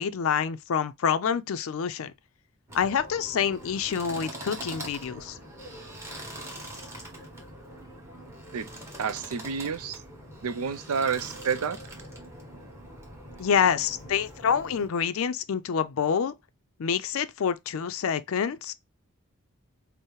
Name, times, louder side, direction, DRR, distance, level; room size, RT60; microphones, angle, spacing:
voice 1, 0.0-2.1 2.7-5.4 13.4-16.3 16.8-18.7, left 7 dB, 65° left, 0.4 m, -27 dB
sound 1, 2.7-14.9, right 1 dB, 10° right, 1.1 m, -43 dB
voice 2, 9.0-10.0 10.4-11.8, right 6 dB, 85° right, 0.4 m, -29 dB
5.4 x 2.0 x 3.0 m
head